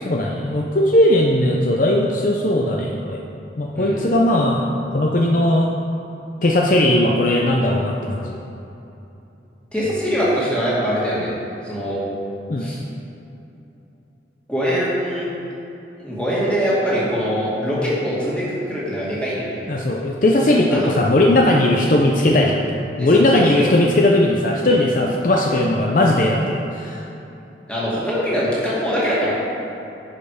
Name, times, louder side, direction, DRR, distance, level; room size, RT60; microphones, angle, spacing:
voice 1, 0.0-3.2 3.6-4.6 4.9-5.7 6.4-8.3 12.5-12.7 19.7-22.6 23.0-27.1, left 1 dB, 45° left, 0 dB, 0.6 m, -18 dB
voice 2, 3.8-4.1 9.7-11.3 11.6-12.0 12.6-12.8 14.5-15.3 16.0-19.6 20.7-20.9 23.0-23.6 27.7-29.3, equal, 5° left, -8 dB, 2.2 m, -23 dB
10.5 x 5.4 x 5.0 m, 2.9 s
head